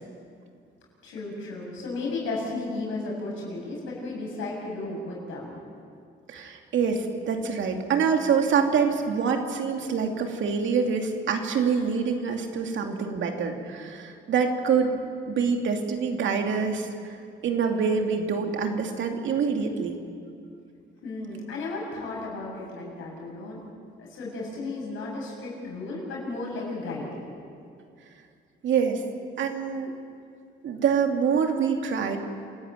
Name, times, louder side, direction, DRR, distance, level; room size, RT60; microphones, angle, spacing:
voice 1, 1.0-5.5 21.0-23.6 24.0-27.2, left 2 dB, 85° left, -3 dB, 7.4 m, -34 dB
voice 2, 6.3-14.9 15.3-17.2 17.4-20.0 28.6-29.0 29.4-29.9 30.6-32.2, right 6 dB, 70° right, 4 dB, 2.6 m, -25 dB
28.0 x 13.0 x 9.1 m, 2.3 s
cardioid pair, 90°, 20 cm